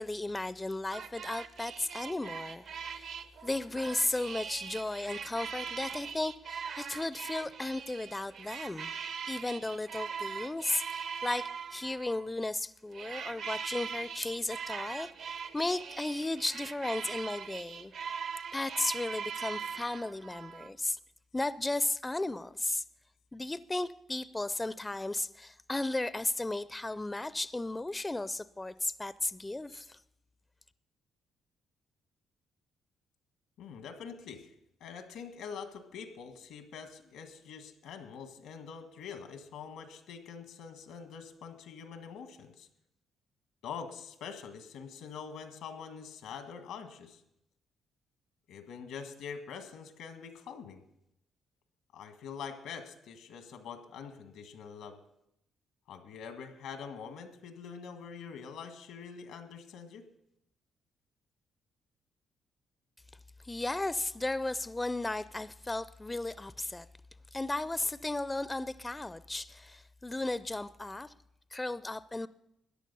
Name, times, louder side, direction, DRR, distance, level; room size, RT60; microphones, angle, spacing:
voice 1, 0.0-3.2 3.4-8.9 9.3-17.9 18.5-21.0 21.3-22.8 23.3-30.0 63.4-66.9 67.3-71.1 71.5-72.3, left 2 dB, 15° left, 0.4 m, -35 dB
sound 1, 0.9-12.3 12.9-20.7, right 6 dB, 70° right, 0.8 m, -41 dB
voice 2, 33.6-34.5 34.8-42.7 43.6-47.2 48.5-50.8 51.9-55.0 55.9-60.1, left 6 dB, 90° left, 1.5 m, -45 dB
14.0 x 10.0 x 5.4 m
cardioid pair, 90°, 0 cm